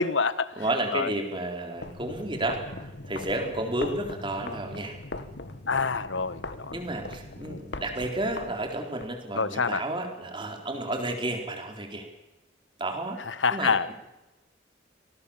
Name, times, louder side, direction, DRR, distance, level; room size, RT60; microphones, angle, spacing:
voice 1, 0.0-0.5 0.9-1.1 5.7-6.7 7.5-7.6 9.4-9.8 13.3-13.9, left 4 dB, 80° left, 15 dB, 1.2 m, -26 dB
voice 2, 0.6-2.6 3.0-5.0 6.7-12.1 12.8-13.2 13.5-13.9, right 1 dB, 25° right, 3 dB, 4.1 m, -31 dB
sound 1, 1.7-9.1, left 2 dB, 65° left, 1.7 m, -40 dB
26.5 x 19.0 x 7.3 m, 1.0 s
head